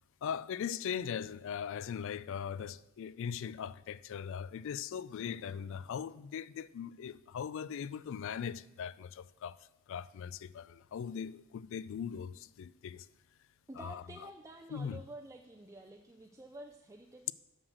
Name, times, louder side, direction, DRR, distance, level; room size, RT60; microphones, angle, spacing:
voice 1, 0.2-9.6 9.9-13.1 13.8-14.0 14.7-15.0, left 7 dB, 60° left, 0.3 m, -40 dB
voice 2, 13.7-17.3, right 2 dB, 15° right, 0.4 m, -50 dB
7.6 x 6.3 x 6.4 m
head